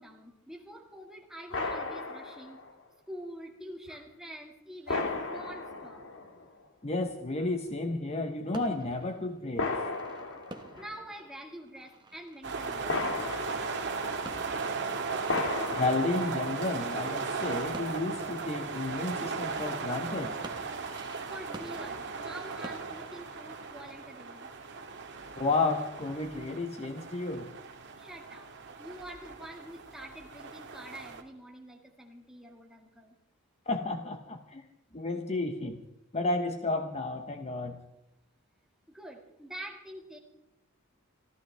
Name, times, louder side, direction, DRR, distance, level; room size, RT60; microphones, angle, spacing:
voice 1, 0.0-2.6 3.1-6.0 10.8-13.3 21.3-24.5 28.0-28.5 28.8-33.2 38.9-40.2, right 1 dB, ahead, 0 dB, 2.0 m, -46 dB
sound 1, 1.5-2.7 3.9-4.0 4.9-6.6 7.4-7.5 9.6-11.0 12.9-14.5 15.3-16.8, left 3 dB, 60° left, 2.0 m, -35 dB
voice 2, 6.8-9.7 15.7-20.4 25.4-27.5 33.7-34.6 34.9-35.8 36.1-37.8, left 2 dB, 30° left, 6 dB, 0.9 m, -32 dB
sound 2, 8.5-16.9 17.2-19.8 20.2-23.2, right 2 dB, 20° right, 1.2 m, -50 dB
sound 3, 12.4-31.2, right 4 dB, 55° right, 1.8 m, -37 dB
26.5 x 14.0 x 3.4 m, 0.84 s
head